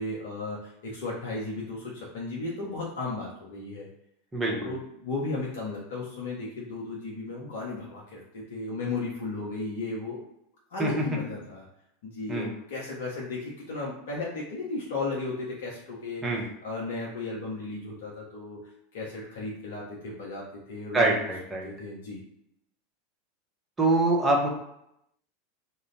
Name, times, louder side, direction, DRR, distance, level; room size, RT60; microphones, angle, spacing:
voice 1, 0.0-3.9 4.5-10.2 10.7-11.6 12.0-16.2 16.6-18.6 18.9-21.3 21.6-22.2, left 3 dB, 65° left, -4 dB, 0.6 m, -35 dB
voice 2, 4.3-4.7 10.8-11.0 12.3-12.5 16.2-16.5 20.9-21.7 23.8-24.5, right 2 dB, 15° right, -2 dB, 0.9 m, -25 dB
2.4 x 2.2 x 3.2 m, 0.79 s
figure-of-eight pair, 85°, 0 cm